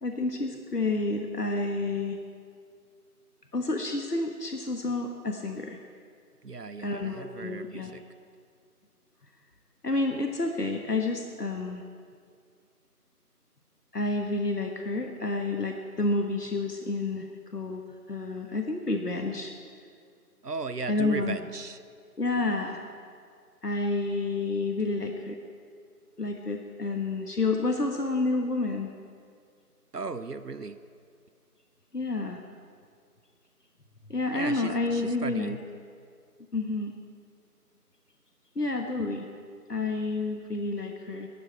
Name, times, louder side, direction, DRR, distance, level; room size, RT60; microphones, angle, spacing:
voice 1, 0.0-2.2 3.5-5.8 6.8-7.9 9.8-11.8 13.9-17.3 17.5-17.8 18.1-19.5 20.9-21.3 22.2-22.8 23.6-25.4 26.2-28.9 31.9-32.4 34.1-35.6 36.5-36.9 38.5-39.3 39.7-41.3, left 2 dB, 75° left, 3 dB, 1.5 m, -29 dB
voice 2, 6.4-8.0 20.4-21.8 29.9-30.8 34.3-35.6, right 4 dB, 80° right, 13 dB, 0.9 m, -36 dB
20.0 x 13.0 x 4.6 m, 2.2 s
figure-of-eight pair, 175°, 47 cm